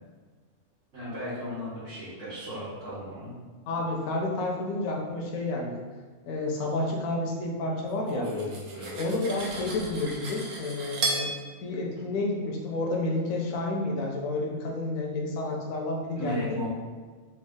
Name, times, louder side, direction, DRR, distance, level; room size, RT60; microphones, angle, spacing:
voice 1, 0.9-3.3 8.1-9.0 16.2-16.7, equal, 60° right, -10 dB, 1.3 m, -35 dB
voice 2, 3.7-5.8 6.3-8.2 9.0-11.3 11.6-16.6, left 2 dB, 70° left, -1 dB, 1.0 m, -30 dB
Cutlery silverware, 8.1-11.3, right 3 dB, 75° right, 1.2 m, -34 dB
3.4 x 2.4 x 3.6 m, 1.4 s
omnidirectional pair, 1.6 m